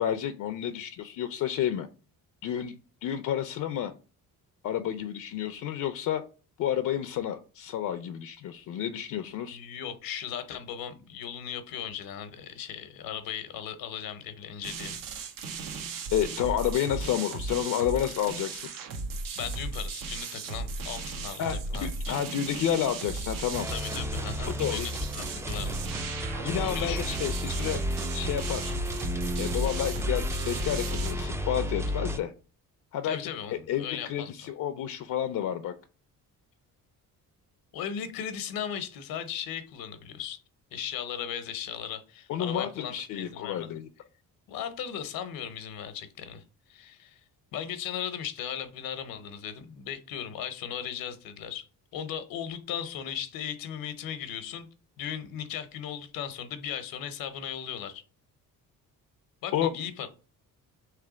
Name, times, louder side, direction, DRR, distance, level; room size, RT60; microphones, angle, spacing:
voice 1, 0.0-1.9 2.4-2.7 3.0-3.9 4.6-6.2 6.6-9.6 16.1-18.7 21.4-23.7 24.6-24.9 26.4-27.8 28.1-28.7 29.4-32.3 32.9-33.2 33.7-35.7 42.3-43.9 59.5-59.7, left 10 dB, 65° left, 10 dB, 0.5 m, -30 dB
voice 2, 9.5-15.0 19.3-22.1 23.7-27.2 33.0-34.5 37.7-40.4 40.7-43.7 44.5-46.4 46.7-47.2 47.5-51.7 51.9-54.7 55.0-58.0 59.4-60.1, left 9 dB, 85° left, 11 dB, 0.8 m, -37 dB
sound 1, 14.6-31.1, right 3 dB, 80° right, 0.9 m, -36 dB
sound 2, 23.5-32.2, equal, 10° right, 0.3 m, -32 dB
3.3 x 3.3 x 4.9 m, 0.36 s
cardioid pair, 140°, 34 cm